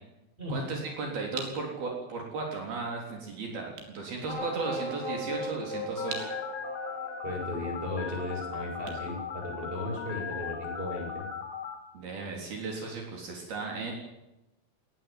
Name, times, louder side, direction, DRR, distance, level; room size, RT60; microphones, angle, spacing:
voice 1, 0.5-6.3 11.9-13.9, right 4 dB, 60° right, 0 dB, 5.5 m, -35 dB
sound 1, 1.3-10.1, right 5 dB, 75° right, 5.8 m, -47 dB
sound 2, 4.3-9.2, equal, 25° left, 8.3 m, -38 dB
Telephone, 6.0-11.8, left 7 dB, 70° left, 5.2 m, -38 dB
voice 2, 7.2-11.2, left 1 dB, 10° right, 2 dB, 8.1 m, -35 dB
21.0 x 19.5 x 9.1 m, 0.95 s
omnidirectional pair, 5.0 m